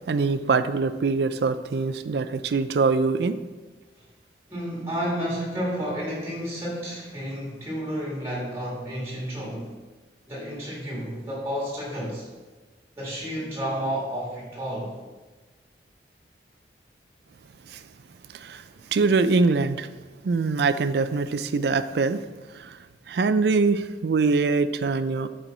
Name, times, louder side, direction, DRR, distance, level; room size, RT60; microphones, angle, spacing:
voice 1, 0.1-3.4 17.7-17.8 18.3-18.6 18.9-19.9 20.2-22.2 22.5-22.8 23.1-25.3, right 4 dB, 65° right, 12 dB, 0.4 m, -23 dB
voice 2, 4.5-9.7 10.3-12.3 13.0-15.0, equal, 15° right, -4 dB, 1.6 m, -31 dB
8.0 x 4.5 x 3.9 m, 1.3 s
head